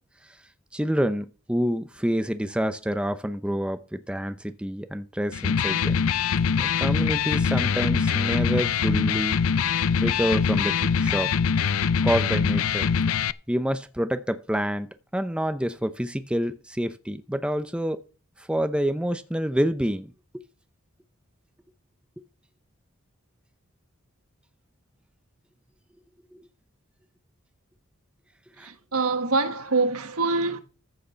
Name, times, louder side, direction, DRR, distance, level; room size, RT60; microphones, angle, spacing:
voice 1, 0.7-6.0 6.6-9.4 9.7-11.3 12.0-12.9 13.5-14.9 15.1-18.0 18.4-20.1 26.3-26.5 28.6-28.7, equal, 5° right, 0.7 m, -27 dB
Electric guitar, 5.3-13.3, left 6 dB, 75° left, 0.5 m, -23 dB
voice 2, 28.6-30.6, right 3 dB, 85° right, 1.4 m, -25 dB
14.0 x 6.5 x 5.7 m
head